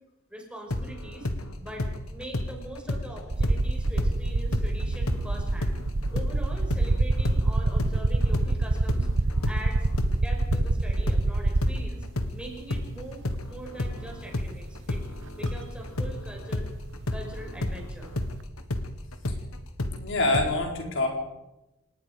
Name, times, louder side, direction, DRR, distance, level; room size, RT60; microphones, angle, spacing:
voice 1, 0.3-1.3 1.6-5.8 6.1-12.1 12.3-15.0 15.3-16.7 17.1-18.1, right 1 dB, 5° right, 0 dB, 5.6 m, -42 dB
sound 1, 0.7-4.2 4.5-12.4 12.7-20.5, left 1 dB, 80° left, 1.8 m, -32 dB
sound 2, 3.3-12.1 13.2-13.3 15.5-15.6 15.8-18.4, right 2 dB, 60° right, 1.0 m, -26 dB
voice 2, 20.0-21.1, left 2 dB, 60° left, 2 dB, 4.5 m, -25 dB
28.5 x 19.0 x 5.3 m, 0.98 s
head